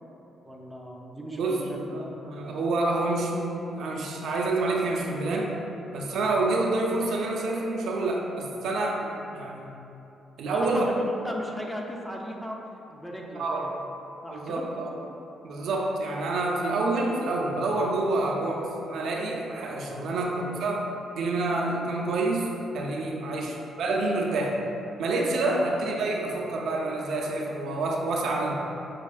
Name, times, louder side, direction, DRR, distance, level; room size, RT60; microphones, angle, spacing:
voice 1, 0.5-2.1 10.5-12.6 12.9-13.7 14.2-14.7 18.2-18.5 20.1-20.3 23.3-23.6 25.6-25.7, equal, ahead, -1 dB, 0.5 m, -37 dB
voice 2, 1.3-5.5 5.9-9.7 10.4-10.9 13.3-13.6 14.3-14.9 15.4-20.9 21.1-22.5 22.7-24.6 25.0-28.5, right 2 dB, 75° right, -1 dB, 0.5 m, -28 dB
6.1 x 2.4 x 2.3 m, 2.9 s
cardioid pair, 85°, 0 cm